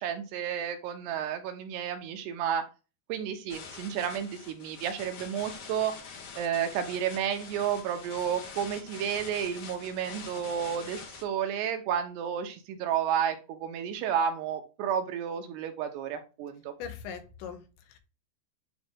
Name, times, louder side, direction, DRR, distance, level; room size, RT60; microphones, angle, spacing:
voice 1, 0.0-2.6 3.1-5.9 6.4-16.7, right 8 dB, 80° right, 2.9 m, -31 dB
sound 1, 3.5-11.2, left 5 dB, 65° left, 1.4 m, -45 dB
voice 2, 16.8-18.0, left 7 dB, 85° left, 3.2 m, -41 dB
9.2 x 3.1 x 3.5 m
omnidirectional pair, 5.0 m